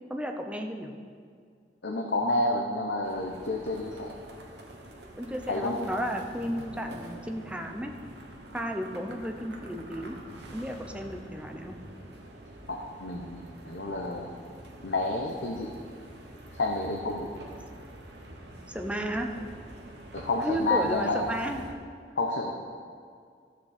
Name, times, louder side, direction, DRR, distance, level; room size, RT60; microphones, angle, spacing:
voice 1, 0.1-0.9 5.2-7.9 8.5-10.2 10.5-11.8 18.7-19.3 20.4-21.6, equal, 5° right, 3 dB, 0.7 m, -33 dB
voice 2, 1.8-4.1 5.5-5.8 12.7-14.3 14.8-15.7 16.6-17.3 20.1-21.2 22.2-22.5, left 2 dB, 70° left, 0 dB, 0.9 m, -29 dB
sound 1, 3.0-21.7, right 1 dB, 70° right, 1.2 m, -46 dB
13.0 x 7.4 x 4.3 m, 2.2 s
head